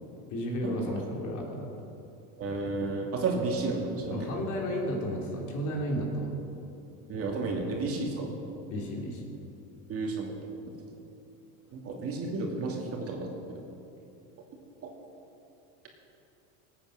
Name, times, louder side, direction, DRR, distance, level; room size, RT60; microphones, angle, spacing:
voice 1, 0.3-1.7 4.1-6.3 8.7-9.3, equal, 45° left, 0 dB, 3.2 m, -33 dB
voice 2, 2.4-4.2 7.1-8.3 9.9-10.3 11.7-13.4, right 3 dB, 35° right, 0 dB, 2.6 m, -32 dB
20.0 x 9.0 x 6.6 m, 2.8 s
supercardioid pair, 135°, 40 cm